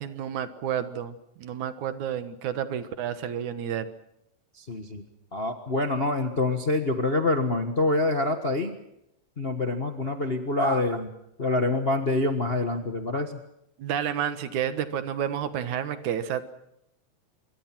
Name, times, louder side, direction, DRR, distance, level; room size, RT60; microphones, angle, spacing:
voice 1, 0.0-3.9 13.8-16.4, right 9 dB, 75° right, 11 dB, 2.7 m, -30 dB
voice 2, 4.6-5.0 5.3-8.8 9.4-11.1 11.4-13.4, left 2 dB, 40° left, 6 dB, 0.9 m, -26 dB
26.0 x 23.5 x 6.1 m, 0.82 s
omnidirectional pair, 3.5 m